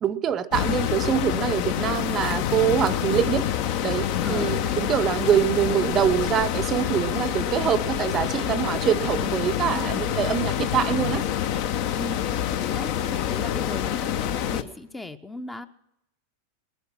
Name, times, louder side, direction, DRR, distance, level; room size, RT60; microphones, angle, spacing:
voice 1, 0.0-3.5 3.8-11.2, right 9 dB, 30° right, 17 dB, 0.7 m, -24 dB
sound 1, 0.5-14.6, left 10 dB, 45° left, 0.8 m, -27 dB
voice 2, 4.1-5.1 11.9-15.7, left 3 dB, 10° left, 9 dB, 0.7 m, -38 dB
20.0 x 11.5 x 6.2 m, 0.83 s
figure-of-eight pair, 90°, 0 cm